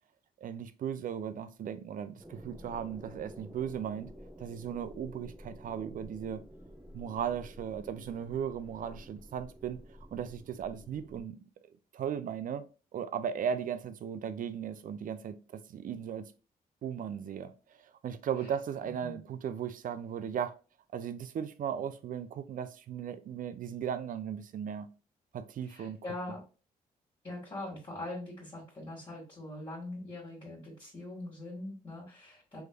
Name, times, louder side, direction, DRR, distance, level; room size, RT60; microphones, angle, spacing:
voice 1, 0.4-4.1 4.4-6.4 6.9-9.8 10.1-11.4 11.9-12.6 12.9-16.3 16.8-17.5 17.8-20.5 20.9-24.9 25.3-26.0, right 8 dB, 55° right, 0.4 m, -37 dB
sound 1, 2.2-11.2, equal, 10° right, 0.8 m, -51 dB
voice 2, 18.8-19.2 25.6-26.4 27.2-32.6, left 2 dB, 30° left, 1.8 m, -42 dB
3.4 x 3.1 x 2.2 m
cardioid pair, 65°, 16 cm